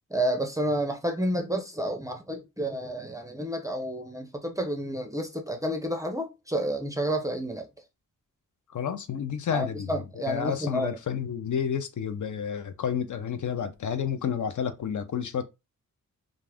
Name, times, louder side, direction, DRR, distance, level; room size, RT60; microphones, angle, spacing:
voice 1, 0.1-7.7 9.5-11.0, right 1 dB, 10° right, 0.5 m, -30 dB
voice 2, 8.7-9.9 10.2-15.4, left 8 dB, 60° left, 0.5 m, -30 dB
2.5 x 2.4 x 3.3 m
wide cardioid pair, 135°, 34 cm